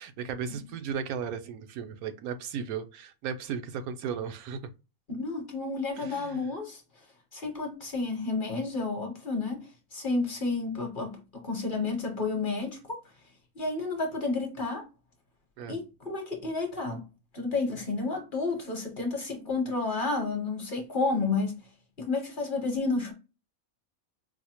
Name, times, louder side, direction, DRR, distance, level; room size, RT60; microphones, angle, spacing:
voice 1, 0.0-4.6 6.0-6.4 15.6-15.8, right 7 dB, 85° right, 1.1 m, -35 dB
voice 2, 5.1-6.8 7.3-13.0 13.5-14.9 15.7-17.0 17.3-21.5 22.0-23.1, left 3 dB, 40° left, 1.0 m, -31 dB
4.8 x 2.1 x 2.8 m
omnidirectional pair, 1.5 m